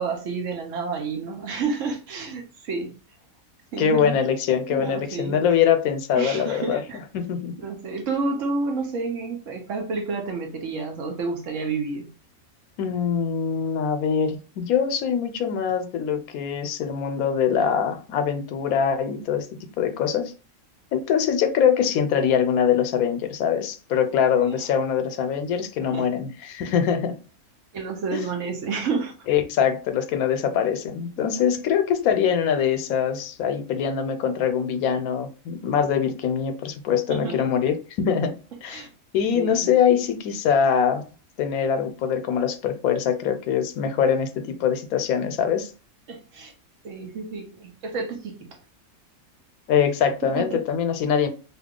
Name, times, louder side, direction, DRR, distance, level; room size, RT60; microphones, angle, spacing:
voice 1, 0.0-2.9 3.7-4.1 4.7-5.4 6.2-7.0 7.6-12.1 24.4-24.5 25.8-26.1 27.7-29.1 31.2-31.5 37.1-37.4 38.7-38.9 39.3-39.7 46.1-46.5 46.8-48.4 50.2-50.6, right 4 dB, 65° right, 1.1 m, -30 dB
voice 2, 3.8-6.8 7.1-7.6 12.8-19.5 19.8-20.3 20.9-27.2 28.1-28.2 29.3-38.3 38.6-38.9 39.1-41.0 41.4-45.7 49.7-51.3, left 7 dB, 85° left, 1.0 m, -23 dB
2.8 x 2.3 x 3.6 m
omnidirectional pair, 1.5 m